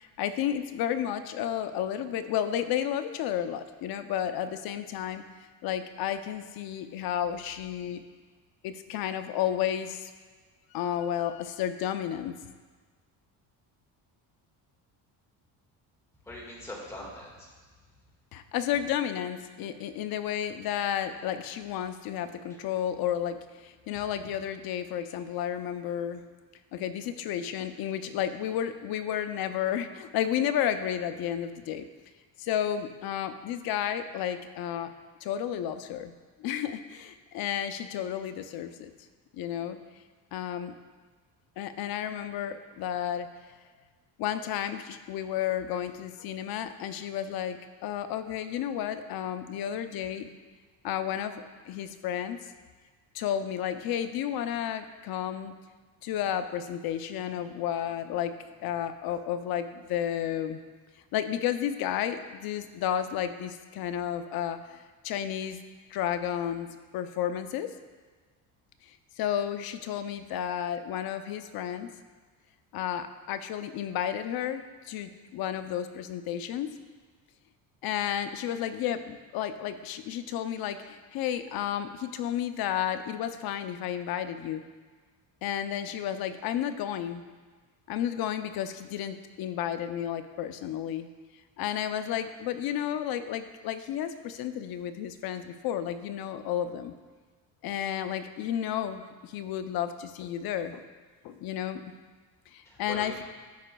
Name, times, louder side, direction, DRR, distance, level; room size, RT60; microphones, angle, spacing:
voice 1, 0.0-5.2 5.6-8.0 8.6-10.1 10.7-12.3 18.3-26.2 26.7-31.9 32.4-34.9 35.2-36.1 36.4-38.9 39.3-39.8 40.3-40.7 41.6-43.3 44.2-47.6 47.8-50.3 50.8-52.4 53.1-55.5 56.0-58.3 58.6-60.6 61.1-65.6 65.9-67.7 68.9-71.9 72.7-76.7 77.8-84.6 85.4-87.2 87.9-91.1 91.6-96.9 97.6-100.8 101.2-101.9 102.5-103.2, left 10 dB, 60° left, 10 dB, 0.6 m, -32 dB
voice 2, 16.2-17.5 23.9-24.0 102.6-103.2, left 1 dB, 5° left, -4 dB, 1.7 m, -42 dB
13.5 x 5.0 x 2.2 m, 1.4 s
cardioid pair, 140°, 40 cm